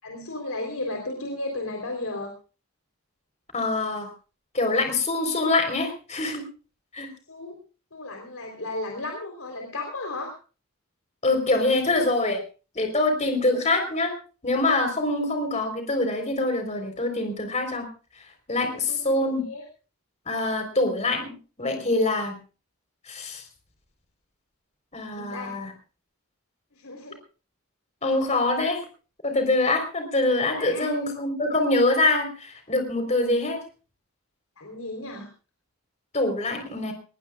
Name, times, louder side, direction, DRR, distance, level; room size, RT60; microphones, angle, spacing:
voice 1, 0.0-2.3 7.3-7.5 7.9-10.4 18.7-19.0 19.4-19.6 25.1-25.5 26.7-27.2 30.5-31.0 33.2-33.3 34.6-35.3, left 2 dB, 75° left, 2 dB, 3.8 m, -34 dB
voice 2, 3.5-4.1 4.5-6.4 6.9-7.1 11.2-12.4 12.8-14.1 14.4-17.9 18.5-19.4 20.3-21.3 21.6-22.4 23.1-23.4 24.9-25.7 28.0-28.8 29.2-33.6 36.1-36.9, left 2 dB, 30° left, 5 dB, 4.1 m, -24 dB
21.0 x 20.5 x 2.4 m, 0.36 s
head